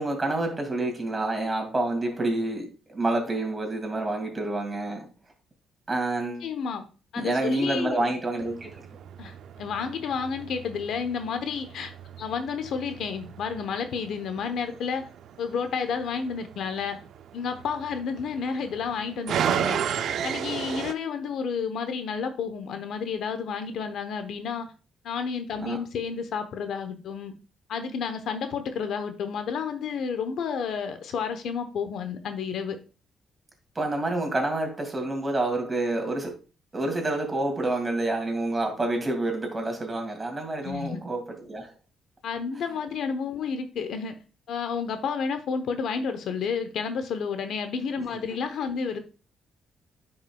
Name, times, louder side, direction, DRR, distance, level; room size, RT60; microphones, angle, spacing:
voice 1, 0.0-5.1 5.9-6.5 7.2-8.7 25.6-25.8 33.7-36.3 36.7-41.7, right 2 dB, 25° right, 2.5 m, -28 dB
voice 2, 6.4-6.9 7.1-8.1 9.2-15.0 15.4-17.0 17.3-19.8 20.2-24.7 25.0-27.3 27.7-32.8 40.6-41.0 42.2-44.1 44.5-49.0, left 6 dB, 70° left, 1.0 m, -31 dB
sound 1, 8.4-20.9, right 8 dB, 70° right, 0.5 m, -35 dB
9.9 x 5.6 x 2.3 m
cardioid pair, 90°, 0 cm